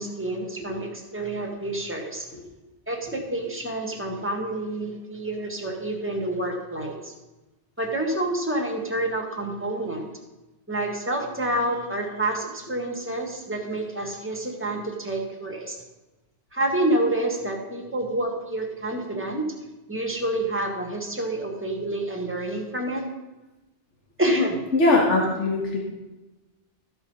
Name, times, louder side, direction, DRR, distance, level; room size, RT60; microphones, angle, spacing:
voice 1, 0.0-2.3 2.9-7.1 7.8-10.1 10.7-15.8 16.5-19.5 19.9-23.1 24.2-24.6, right 1 dB, 10° right, 1 dB, 1.7 m, -28 dB
voice 2, 24.7-25.8, left 2 dB, 85° left, -2 dB, 1.8 m, -21 dB
14.0 x 5.7 x 5.5 m, 1.1 s
omnidirectional pair, 1.2 m